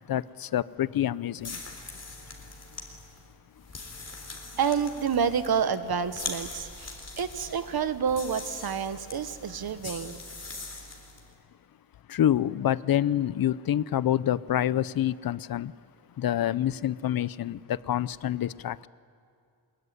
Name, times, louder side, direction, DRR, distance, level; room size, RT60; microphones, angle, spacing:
voice 1, 0.1-1.6 12.1-15.7 16.2-18.9, left 11 dB, 60° left, 19 dB, 0.6 m, -27 dB
sound 1, 1.4-11.3, left 3 dB, 40° left, 3.7 m, -42 dB
voice 2, 4.6-10.2, right 7 dB, 65° right, 11 dB, 1.4 m, -29 dB
23.5 x 22.0 x 9.7 m, 2.4 s
wide cardioid pair, 140°, 41 cm